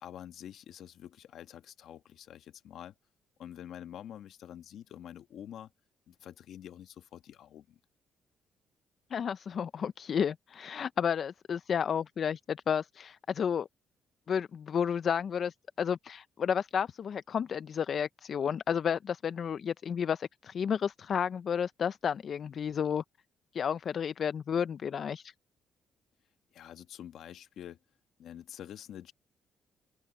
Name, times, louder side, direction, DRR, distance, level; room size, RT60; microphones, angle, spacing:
voice 1, 0.0-2.9 3.4-5.7 6.1-7.8 26.5-27.8 28.2-29.1, left 10 dB, 75° left, 1.5 m, -47 dB
voice 2, 9.1-13.7 14.3-23.0 23.5-25.3, left 7 dB, 55° left, 0.4 m, -32 dB
open air
cardioid pair, 90°, 0 cm